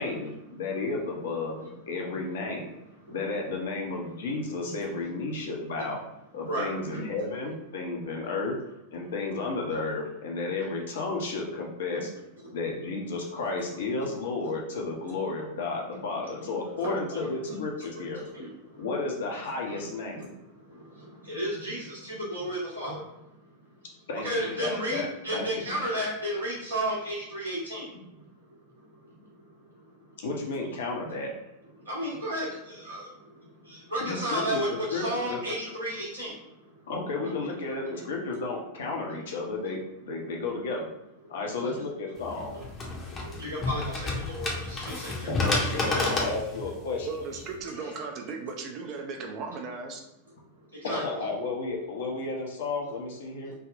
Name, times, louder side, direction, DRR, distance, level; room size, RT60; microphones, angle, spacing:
voice 1, 0.0-1.6 1.9-2.7 3.1-6.0 6.3-8.5 8.9-12.1 12.5-18.2 18.8-20.4 24.1-25.0 25.3-25.6 30.2-31.3 34.0-35.4 36.9-40.9 41.3-42.6 45.3-47.1 50.8-53.5, left 3 dB, 60° left, 0 dB, 0.6 m, -32 dB
voice 2, 6.4-7.0 10.6-10.7 16.3-17.9 18.1-18.9 19.7-19.8 20.5-23.3 24.2-28.2 28.7-30.1 31.8-36.9 39.1-39.2 40.4-40.5 41.2-41.3 41.6-41.8 42.5-42.6 42.9-46.1 47.7-47.9 50.7-51.2 53.4-53.5, equal, 75° right, -6 dB, 1.2 m, -34 dB
sound 1, 42.2-47.6, left 3 dB, 25° left, 0.7 m, -31 dB
voice 3, 47.1-50.0, right 4 dB, 35° right, 2 dB, 0.5 m, -36 dB
3.5 x 2.1 x 2.5 m, 0.87 s
figure-of-eight pair, 90°, 0 cm